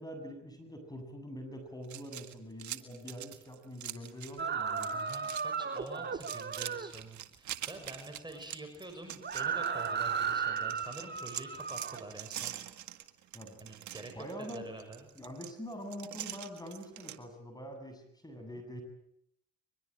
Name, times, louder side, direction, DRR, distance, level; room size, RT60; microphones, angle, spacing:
voice 1, 0.0-4.9 6.0-6.1 13.3-13.6 14.1-14.7 15.1-18.8, equal, 15° left, 6 dB, 7.9 m, -44 dB
sound 1, 1.8-4.4 4.7-5.4 5.7-10.2 10.6-17.2, right 12 dB, 70° right, 1.9 m, -44 dB
sound 2, 4.4-6.9 9.2-12.1, right 6 dB, 35° right, 2.0 m, -35 dB
voice 2, 4.9-12.6 13.6-14.1 14.4-15.1 18.4-18.6, right 2 dB, 15° right, 5 dB, 6.5 m, -47 dB
23.0 x 22.5 x 9.0 m, 0.75 s
supercardioid pair, 80°, 30 cm